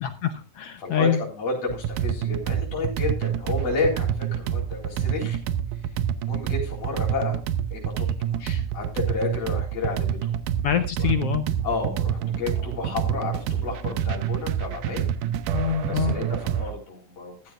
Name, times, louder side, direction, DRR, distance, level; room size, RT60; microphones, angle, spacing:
voice 1, 0.0-1.2 10.6-11.4 15.5-16.2, left 9 dB, 65° left, 9 dB, 1.5 m, -25 dB
voice 2, 0.8-5.4 6.3-7.4 7.7-8.1 8.4-10.3 11.0-11.1 11.6-15.0 15.9-17.5, left 3 dB, 50° left, -2 dB, 5.1 m, -31 dB
sound 1, 1.7-16.7, right 9 dB, 85° right, 2.4 m, -27 dB
14.0 x 13.5 x 2.5 m, 0.33 s
omnidirectional pair, 3.7 m